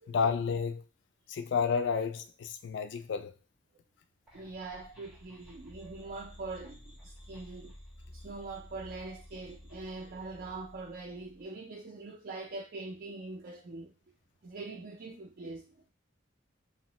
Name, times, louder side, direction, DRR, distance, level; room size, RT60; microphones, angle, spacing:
voice 1, 0.1-0.8 1.3-3.3, left 5 dB, 65° left, 0.4 m, -31 dB
sound 1, 4.3-11.4, left 1 dB, ahead, 0.6 m, -52 dB
voice 2, 4.3-7.7 8.1-13.9 14.4-15.9, right 3 dB, 50° right, 0.4 m, -43 dB
2.7 x 2.0 x 2.9 m
head